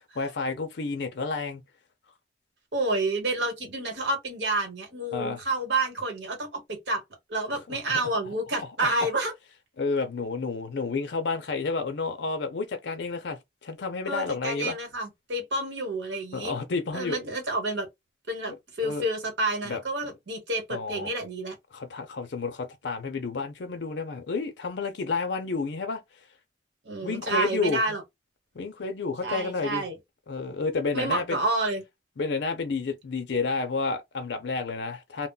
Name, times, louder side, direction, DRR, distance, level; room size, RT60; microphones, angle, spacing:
voice 1, 0.2-1.6 5.1-5.4 7.7-8.0 8.6-9.1 9.8-14.8 16.3-17.2 18.8-19.1 19.6-19.8 20.7-21.1 21.7-26.0 27.0-27.8 28.5-29.9 30.3-31.4 32.2-35.3, left 4 dB, 70° left, 0.5 m, -30 dB
voice 2, 2.7-7.0 7.3-9.3 14.0-16.5 16.9-17.9 18.3-21.5 26.8-28.0 29.2-30.0 30.9-31.8, right 2 dB, 70° right, 1.2 m, -29 dB
2.2 x 2.0 x 3.8 m
head